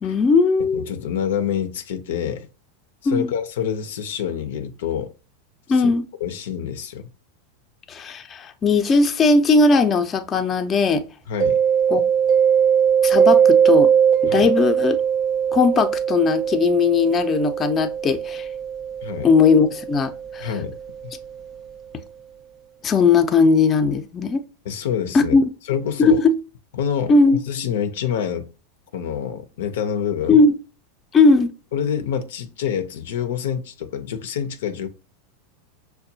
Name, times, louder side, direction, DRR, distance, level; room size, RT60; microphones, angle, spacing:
voice 1, 0.0-0.9 3.1-3.3 5.7-6.1 7.9-11.0 11.9-12.0 13.0-13.9 14.2-15.0 15.5-18.5 19.2-20.5 22.8-24.4 25.1-25.4 26.0-26.4 27.1-27.4 30.3-30.5 31.1-31.5, left 4 dB, 30° left, 0.5 m, -18 dB
voice 2, 0.7-2.5 3.0-5.1 5.7-5.9 6.2-7.1 11.3-11.6 14.3-14.5 19.0-19.3 20.4-20.8 21.0-21.1 24.6-25.4 25.7-26.2 26.8-27.1 27.5-28.5 28.9-30.4 31.7-34.9, left 8 dB, 75° left, 0.5 m, -27 dB
Mallet percussion, 11.4-21.0, right 8 dB, 35° right, 0.3 m, -20 dB
5.8 x 2.2 x 2.7 m
hypercardioid pair, 110°, 0 cm